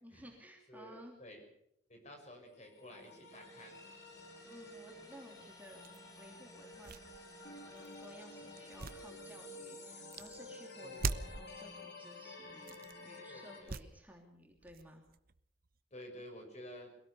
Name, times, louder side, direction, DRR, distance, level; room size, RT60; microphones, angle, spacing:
voice 1, 0.0-1.2 4.4-5.9 6.2-6.9 7.7-15.0, equal, 10° right, 0 dB, 2.9 m, -56 dB
voice 2, 0.7-1.4 1.9-4.0 10.8-11.1 13.3-13.7 15.9-16.9, left 1 dB, 35° left, 3 dB, 6.2 m, -52 dB
sound 1, 2.6-13.6, left 2 dB, 60° left, 5.1 m, -51 dB
sound 2, 3.3-10.0, left 1 dB, 20° left, 4.1 m, -61 dB
sound 3, 5.8-6.0 6.7-8.1 8.6-9.7 10.1-10.4 11.0-11.5 12.5-13.0 13.6-14.2 14.5-15.8, right 4 dB, 50° right, 0.8 m, -42 dB
23.0 x 17.5 x 7.0 m, 0.74 s
head